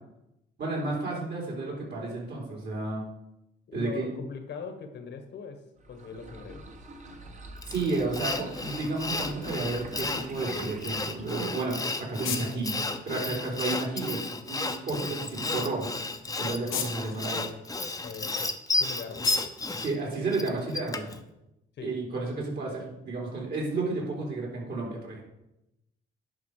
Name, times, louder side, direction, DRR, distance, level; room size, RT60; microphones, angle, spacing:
voice 1, 0.6-3.0 3.7-4.1 7.7-12.8 13.0-15.9 16.4-17.5 19.8-21.1 21.8-25.2, right 3 dB, 55° right, -2 dB, 3.8 m, -32 dB
voice 2, 3.7-6.7 18.0-18.4 18.7-19.3 21.8-21.9, left 5 dB, 65° left, 7 dB, 1.3 m, -41 dB
sound 1, 5.8-11.8, right 2 dB, 35° right, 1.4 m, -45 dB
Sawing, 7.6-21.2, left 3 dB, 15° left, 0.8 m, -33 dB
sound 2, 11.4-20.9, left 9 dB, 85° left, 1.1 m, -42 dB
10.5 x 5.3 x 4.8 m, 0.88 s
cardioid pair, 90°, 20 cm